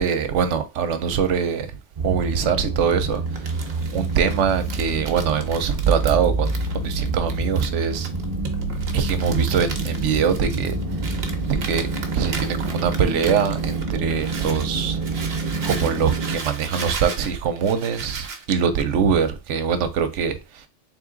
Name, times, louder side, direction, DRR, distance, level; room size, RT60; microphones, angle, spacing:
voice 1, 0.0-1.8 2.0-8.1 8.9-10.8 11.6-15.0 15.3-20.7, right 7 dB, 85° right, 1.0 m, -23 dB
sound 1, 2.0-16.4, right 3 dB, 35° right, 0.9 m, -27 dB
Crumpling crinkling, 3.1-14.7 15.0-18.4, right 5 dB, 65° right, 1.0 m, -37 dB
3.7 x 3.0 x 3.8 m
omnidirectional pair, 1.2 m